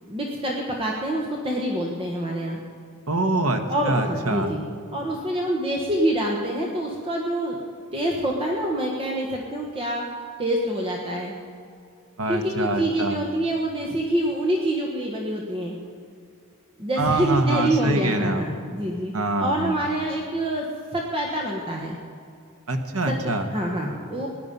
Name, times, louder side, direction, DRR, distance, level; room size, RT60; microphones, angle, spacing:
voice 1, 0.0-2.6 3.7-4.6 4.9-7.6 7.9-10.0 10.4-11.3 12.3-15.7 16.8-19.1 19.4-21.9 23.1-24.3, right 1 dB, 25° right, -1 dB, 1.3 m, -26 dB
voice 2, 3.1-4.5 12.2-13.2 17.0-18.4 19.1-19.9 22.7-23.5, right 2 dB, 70° right, 5 dB, 1.4 m, -25 dB
17.5 x 10.5 x 5.4 m, 2.4 s
head